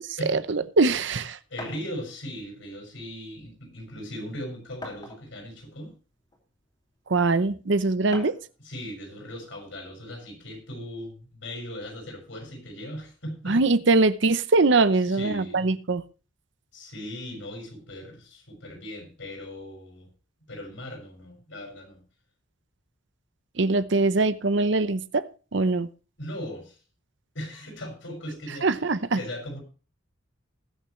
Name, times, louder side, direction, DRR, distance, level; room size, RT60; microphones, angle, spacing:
voice 1, 0.3-1.4 7.1-8.3 13.5-16.0 23.6-25.3 25.5-25.9 28.6-29.2, right 3 dB, 60° right, 0.7 m, -22 dB
voice 2, 1.5-5.9 7.3-7.4 8.6-13.6 15.1-15.7 16.7-20.1 20.5-22.0 26.2-26.8 27.3-28.7 29.1-29.6, equal, 70° left, 6.2 m, -38 dB
sound 1, 1.6-1.9 3.0-3.1 3.5-3.6 4.8-5.5 6.3-6.4 8.1-8.5, left 1 dB, 25° left, 2.8 m, -40 dB
21.0 x 7.1 x 3.1 m
head